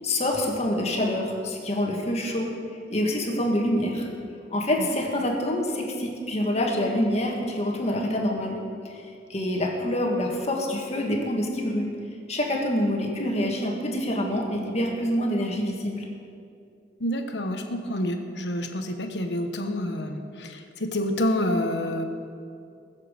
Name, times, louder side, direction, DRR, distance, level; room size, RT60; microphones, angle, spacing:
voice 1, 0.0-2.5 2.9-4.1 4.5-8.6 8.8-9.0 9.3-11.9 12.3-16.1, left 1 dB, 35° left, 0 dB, 1.8 m, -26 dB
voice 2, 17.0-22.0, left 1 dB, 70° left, 5 dB, 1.3 m, -28 dB
22.0 x 7.4 x 5.3 m, 2.4 s
head